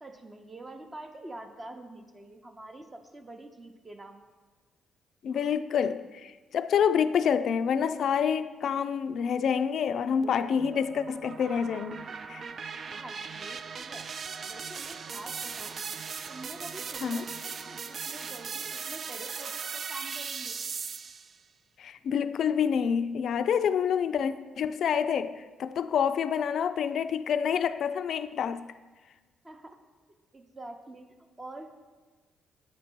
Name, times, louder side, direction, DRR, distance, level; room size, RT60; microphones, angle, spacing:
voice 1, 0.0-4.2 12.9-14.1 14.4-15.8 16.3-20.6 29.4-29.8 30.3-31.1 31.4-31.7, right 2 dB, 25° right, 0.7 m, -46 dB
voice 2, 5.2-12.4 17.0-17.2 21.8-28.7, left 7 dB, 65° left, 0.3 m, -27 dB
sound 1, 10.2-21.4, right 6 dB, 50° right, 0.3 m, -38 dB
8.5 x 5.1 x 4.5 m
cardioid pair, 90°, 0 cm